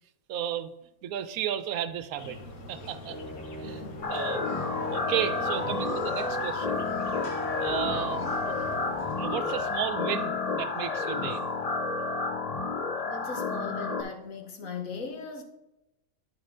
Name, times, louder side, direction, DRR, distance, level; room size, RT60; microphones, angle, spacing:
voice 1, 0.3-0.7 1.0-2.4 2.7-3.2 3.6-3.8 4.1-4.5 4.9-6.8 7.6-8.2 9.2-11.4, right 10 dB, 90° right, 12 dB, 1.1 m, -33 dB
sound 1, 2.2-12.2, left 1 dB, 85° left, 1.6 m, -45 dB
sound 2, 3.1-10.0, equal, 10° left, 1.6 m, -39 dB
voice 2, 3.6-4.0 7.9-8.3 13.1-15.4, left 4 dB, 70° left, 5 dB, 1.5 m, -39 dB
sound 3, 4.0-14.0, left 4 dB, 40° left, 0.5 m, -31 dB
10.5 x 5.2 x 3.7 m, 0.88 s
omnidirectional pair, 1.5 m